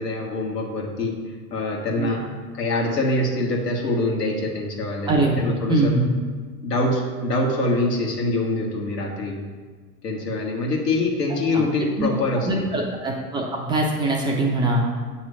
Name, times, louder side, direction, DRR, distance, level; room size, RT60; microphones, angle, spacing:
voice 1, 0.0-2.2 2.5-5.9 6.6-9.4 10.0-12.6, left 2 dB, 85° left, -1 dB, 1.5 m, -24 dB
voice 2, 5.1-6.1 11.5-11.6 12.0-12.1 12.3-14.8, right 2 dB, 10° right, -2 dB, 0.3 m, -22 dB
8.4 x 3.2 x 4.8 m, 1.5 s
hypercardioid pair, 100°, 47 cm